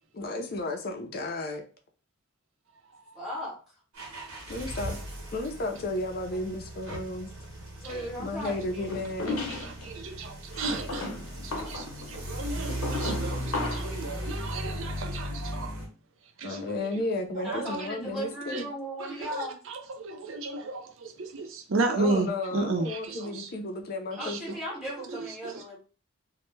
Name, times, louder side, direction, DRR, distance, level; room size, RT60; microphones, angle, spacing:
voice 1, 0.1-1.6 4.5-5.0 5.3-7.3 8.2-9.4 16.4-18.7 22.0-24.6, left 2 dB, 45° left, 0.5 m, -33 dB
voice 2, 3.1-3.6 7.8-9.3 17.4-19.6 24.2-25.8, equal, 5° right, 0.7 m, -37 dB
sound 1, 3.9-15.9, equal, 85° right, 0.9 m, -37 dB
voice 3, 8.4-8.9 9.3-11.1 11.4-15.8 16.4-17.0 17.4-17.9 18.5-18.6 19.0-23.5 24.1-24.6 25.0-25.8, right 3 dB, 60° right, 0.4 m, -34 dB
sound 2, 8.9-9.9 10.5-14.0, left 2 dB, 80° left, 0.7 m, -35 dB
2.1 x 2.1 x 3.1 m
head